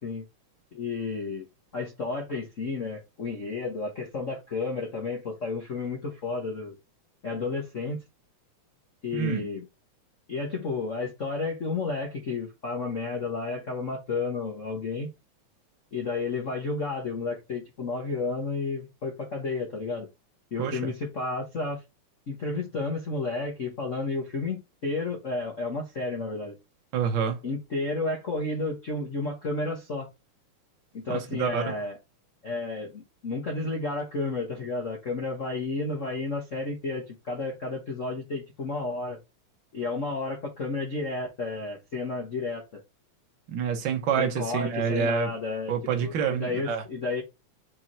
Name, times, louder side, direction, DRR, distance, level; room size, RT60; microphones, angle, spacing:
voice 1, 0.7-1.5 1.7-6.7 7.2-8.0 9.0-9.7 10.3-15.1 15.9-20.1 20.5-21.8 22.3-26.5 27.4-30.1 30.9-32.0 32.4-39.2 39.7-42.6 44.2-45.7 46.0-47.2, left 3 dB, 85° left, 0.6 m, -32 dB
voice 2, 9.1-9.4 20.6-20.8 26.9-27.4 31.1-31.6 43.5-45.3 45.7-46.8, right 7 dB, 65° right, 1.1 m, -27 dB
4.7 x 4.6 x 4.3 m
omnidirectional pair, 3.5 m